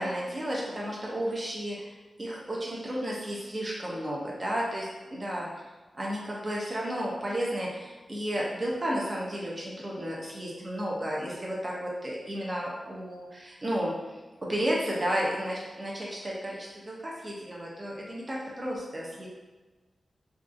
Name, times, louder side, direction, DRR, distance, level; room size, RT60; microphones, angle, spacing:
voice 1, 0.0-1.8 2.2-4.9 5.1-5.5 6.0-14.2 14.5-19.3, equal, 25° right, -5 dB, 0.5 m, -32 dB
2.6 x 2.3 x 2.4 m, 1.2 s
wide cardioid pair, 120°, 0 cm